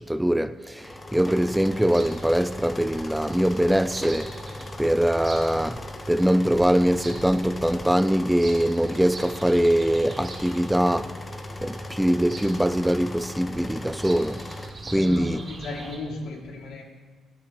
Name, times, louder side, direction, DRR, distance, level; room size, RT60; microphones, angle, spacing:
voice 1, 0.0-4.3 4.8-11.1 11.6-14.4 14.9-15.4, equal, 5° right, 0.4 m, -23 dB
sound 1, 0.8-14.7, left 1 dB, 25° left, 1.0 m, -38 dB
Bird vocalization bird call bird song, 1.3-16.0, right 2 dB, 30° right, 3.3 m, -43 dB
voice 2, 14.9-16.8, left 2 dB, 75° left, 2.5 m, -35 dB
18.5 x 10.5 x 3.0 m
cardioid pair, 90°, 0 cm